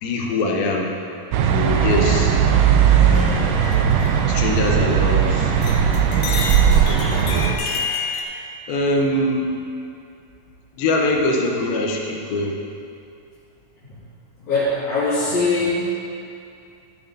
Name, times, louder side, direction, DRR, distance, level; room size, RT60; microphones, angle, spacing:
voice 1, 0.0-0.9 1.5-2.4 2.9-3.5 4.3-5.5 6.1-6.3 6.9-7.5 8.7-9.5 10.7-12.6, left 2 dB, 90° left, 0 dB, 2.9 m, -23 dB
sound 1, 1.3-7.5, right 8 dB, 85° right, 2.4 m, -17 dB
sound 2, 3.1-5.2 5.5-8.2, left 5 dB, 75° left, 2.4 m, -30 dB
voice 2, 14.5-15.9, left 3 dB, 60° left, -15 dB, 3.9 m, -22 dB
14.0 x 6.8 x 4.1 m, 2.5 s
omnidirectional pair, 4.0 m